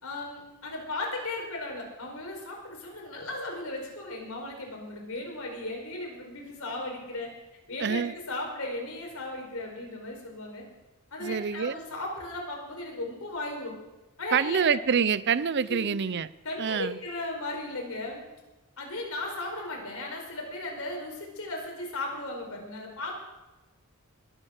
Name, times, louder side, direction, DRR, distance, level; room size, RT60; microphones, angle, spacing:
voice 1, 0.0-7.3 7.7-10.6 11.1-13.8 14.2-14.6 15.7-15.9 16.4-18.3 18.8-23.1, left 2 dB, 65° left, 1 dB, 4.7 m, -36 dB
voice 2, 7.8-8.1 11.2-11.8 14.3-16.3 16.6-17.0, right 6 dB, 50° right, 18 dB, 0.5 m, -26 dB
21.5 x 8.9 x 6.5 m, 1.1 s
head